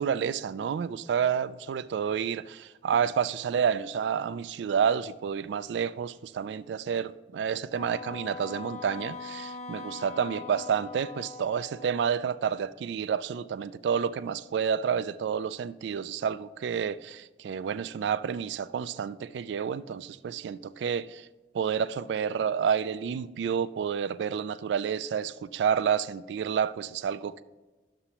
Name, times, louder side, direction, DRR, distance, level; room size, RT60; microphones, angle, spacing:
voice 1, 0.0-21.3 21.5-27.4, right 7 dB, 85° right, 0.3 m, -29 dB
Wind instrument woodwind instrument, 7.7-12.2, left 5 dB, 40° left, 0.6 m, -41 dB
11.0 x 6.8 x 2.9 m
head